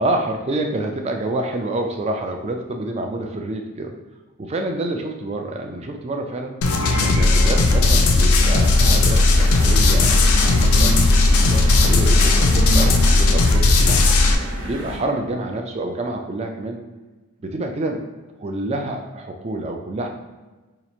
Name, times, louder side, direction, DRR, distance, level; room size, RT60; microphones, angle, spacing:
voice 1, 0.0-3.9 4.4-6.6 7.0-14.0 14.6-16.8 17.4-18.0 18.4-20.1, right 2 dB, 30° right, 3 dB, 0.3 m, -27 dB
sound 1, 6.6-14.4, left 2 dB, 80° left, 0.4 m, -16 dB
sound 2, 6.8-15.0, right 1 dB, 60° right, 0.9 m, -28 dB
2.9 x 2.4 x 4.2 m, 1.2 s
head